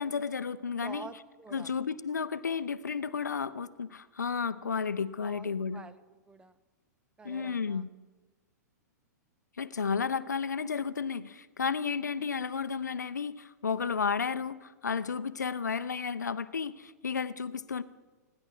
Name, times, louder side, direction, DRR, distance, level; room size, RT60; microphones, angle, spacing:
voice 1, 0.0-1.1 1.5-5.8 7.2-7.9 9.6-17.8, left 6 dB, 75° left, 15 dB, 0.7 m, -32 dB
voice 2, 0.8-1.7 5.2-6.6 7.2-7.9 10.1-10.2, right 4 dB, 10° right, 13 dB, 0.7 m, -48 dB
25.5 x 10.5 x 4.7 m, 1.3 s
figure-of-eight pair, 105°, 9 cm